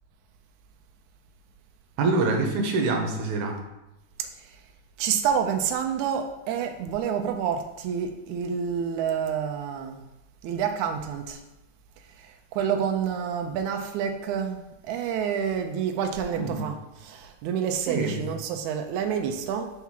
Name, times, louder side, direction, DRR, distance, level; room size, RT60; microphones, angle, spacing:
voice 1, 2.0-3.6 16.3-16.7 17.9-18.2, right 3 dB, 70° right, 2 dB, 2.1 m, -25 dB
voice 2, 5.0-10.0 10.4-11.4 12.2-19.7, right 7 dB, 90° right, 4 dB, 1.6 m, -28 dB
4.7 x 4.6 x 5.6 m, 0.96 s
omnidirectional pair, 4.1 m